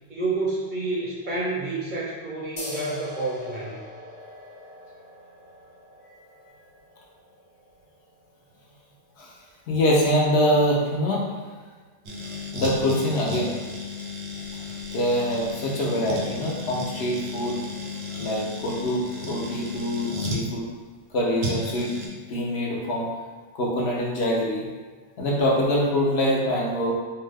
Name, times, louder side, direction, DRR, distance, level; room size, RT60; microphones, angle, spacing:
voice 1, 0.1-3.8, right 3 dB, 60° right, -5 dB, 0.6 m, -29 dB
sound 1, 2.6-9.7, left 1 dB, 45° left, 0.4 m, -43 dB
voice 2, 9.7-11.3 12.5-13.6 14.9-20.7 21.1-21.9 22.3-23.1 23.5-24.6 25.2-26.9, equal, 70° left, -3 dB, 0.9 m, -24 dB
sound 2, 12.0-20.4 21.4-22.1, left 2 dB, 85° right, 0.9 m, -33 dB
2.7 x 2.2 x 3.3 m, 1.5 s
omnidirectional pair, 1.1 m